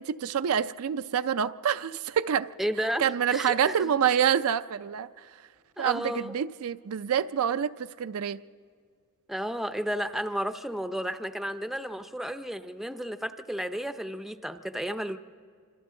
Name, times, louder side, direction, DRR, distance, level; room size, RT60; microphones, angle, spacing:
voice 1, 0.0-2.5 3.0-5.1 5.8-8.4, right 8 dB, 70° right, 0.4 m, -27 dB
voice 2, 2.6-3.0 3.3-3.9 5.8-6.4 9.3-15.2, equal, ahead, 0.5 m, -32 dB
26.5 x 26.0 x 3.8 m
head